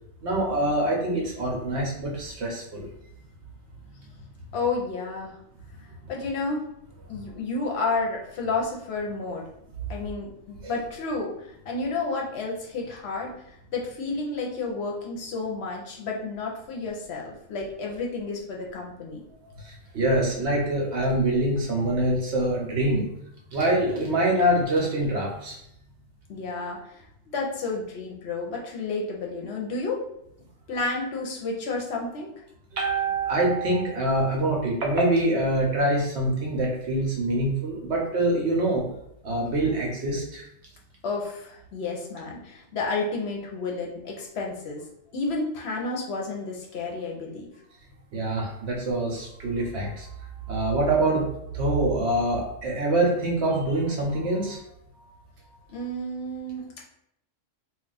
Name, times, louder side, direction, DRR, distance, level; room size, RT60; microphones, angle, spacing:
voice 1, 0.2-2.8 7.1-7.2 10.6-10.7 19.6-23.1 23.5-25.6 32.7-38.9 39.2-40.4 48.1-50.1 50.5-54.6, right 1 dB, 65° right, -1 dB, 1.0 m, -25 dB
voice 2, 4.5-5.4 6.1-6.6 7.1-9.4 9.9-19.2 26.3-27.0 27.3-30.0 30.7-32.3 41.0-44.8 45.1-47.5 55.7-56.7, left 3 dB, 65° left, -1 dB, 0.8 m, -31 dB
2.4 x 2.3 x 3.9 m, 0.76 s
omnidirectional pair, 1.3 m